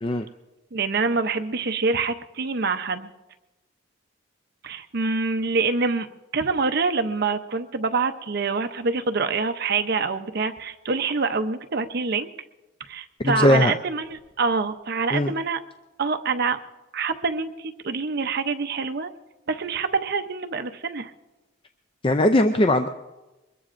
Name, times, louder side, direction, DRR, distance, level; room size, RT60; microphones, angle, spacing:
voice 1, 0.7-3.1 4.6-6.1 6.3-12.3 12.9-15.6 16.0-16.6 16.9-19.1 19.5-21.1, right 4 dB, 55° right, 8 dB, 0.7 m, -26 dB
voice 2, 13.2-13.7 15.1-15.3 22.0-22.9, left 1 dB, 25° left, 7 dB, 0.4 m, -19 dB
23.5 x 21.0 x 2.6 m, 1.1 s
head